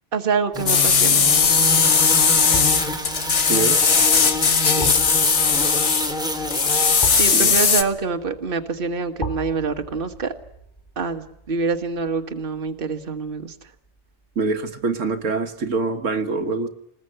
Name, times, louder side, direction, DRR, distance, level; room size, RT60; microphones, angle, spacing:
voice 1, 0.1-1.3 4.7-4.9 7.2-10.3 11.0-13.5, right 5 dB, 45° right, 1.6 m, -26 dB
sound 1, 0.5-7.7, left 1 dB, 5° right, 2.1 m, -27 dB
sound 2, 0.7-6.1 6.5-7.8, left 6 dB, 70° left, 1.6 m, -18 dB
sound 3, 2.5-13.5 13.9-14.0, right 1 dB, 20° left, 2.2 m, -38 dB
voice 2, 3.5-4.0 7.3-7.5 14.4-16.7, right 3 dB, 80° right, 1.8 m, -25 dB
27.5 x 20.5 x 8.0 m
omnidirectional pair, 1.3 m